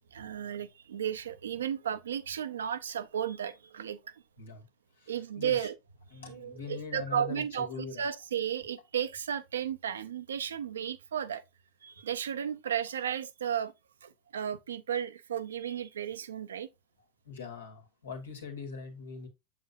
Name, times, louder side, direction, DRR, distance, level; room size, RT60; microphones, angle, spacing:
voice 1, 0.1-4.1 5.1-5.7 6.3-11.4 11.8-13.7 14.0-16.7, right 9 dB, 80° right, 0.6 m, -34 dB
voice 2, 5.0-5.7 6.1-8.0 17.3-19.3, left 5 dB, 85° left, 1.9 m, -42 dB
7.2 x 5.8 x 2.6 m
hypercardioid pair, 90°, 0 cm